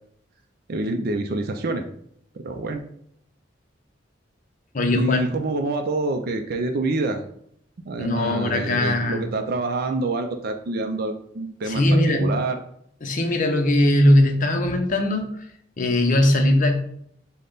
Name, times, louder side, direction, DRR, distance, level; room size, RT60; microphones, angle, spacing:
voice 1, 0.7-1.9 2.3-2.8 4.9-7.2 7.9-11.8 12.2-12.6, right 2 dB, 55° right, 5 dB, 0.4 m, -26 dB
voice 2, 4.7-5.3 8.0-9.3 11.7-12.4 13.0-15.2 15.8-16.8, left 1 dB, 45° left, 4 dB, 0.7 m, -20 dB
5.4 x 2.2 x 3.9 m, 0.67 s
head